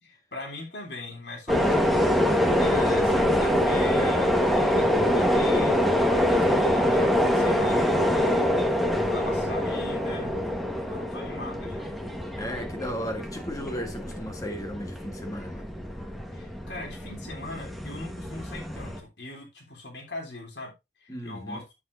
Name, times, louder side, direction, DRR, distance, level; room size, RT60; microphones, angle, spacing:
voice 1, 0.0-8.7 9.0-11.9 16.3-20.7 21.0-21.6, left 2 dB, 80° left, 3.1 m, -41 dB
sound 1, 1.5-19.0, equal, ahead, 1.3 m, -25 dB
voice 2, 12.3-15.7 21.1-21.6, equal, 20° left, 1.5 m, -35 dB
8.3 x 7.4 x 2.6 m
head